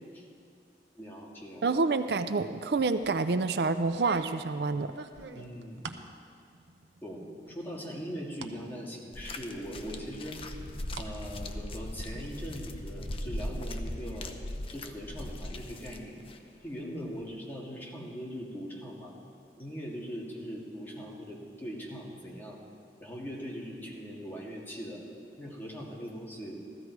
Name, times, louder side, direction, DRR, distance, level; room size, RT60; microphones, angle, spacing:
voice 1, 1.0-1.8 5.3-6.0 7.0-10.4 11.0-14.3 14.7-16.2 16.6-19.1 19.6-22.6 23.0-25.0 25.4-26.6, equal, 10° left, -3 dB, 2.2 m, -41 dB
voice 2, 1.6-4.9, right 3 dB, 65° right, 11 dB, 0.4 m, -28 dB
sound 1, 2.8-3.2 3.8-6.1 6.5-7.1 7.5-8.6 9.0-9.1 10.0-11.1 11.4-12.2, right 4 dB, 90° right, 0.8 m, -45 dB
sound 2, 9.1-16.4 17.2-17.3, left 1 dB, 30° left, 0.7 m, -39 dB
15.0 x 14.5 x 4.7 m, 2.3 s
head